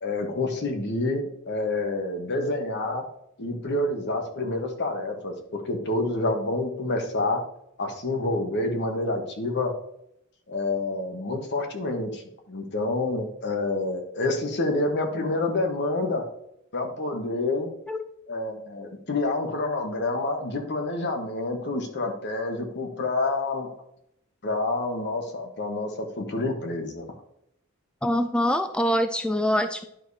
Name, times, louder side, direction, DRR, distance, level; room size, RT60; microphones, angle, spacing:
voice 1, 0.0-3.0 3.4-7.4 7.8-9.7 10.5-16.2 16.7-17.7 18.3-23.7 24.4-27.0, left 2 dB, 55° left, 4 dB, 1.2 m, -28 dB
voice 2, 28.0-29.8, equal, 5° left, 7 dB, 0.3 m, -24 dB
10.5 x 4.9 x 2.7 m, 0.76 s
head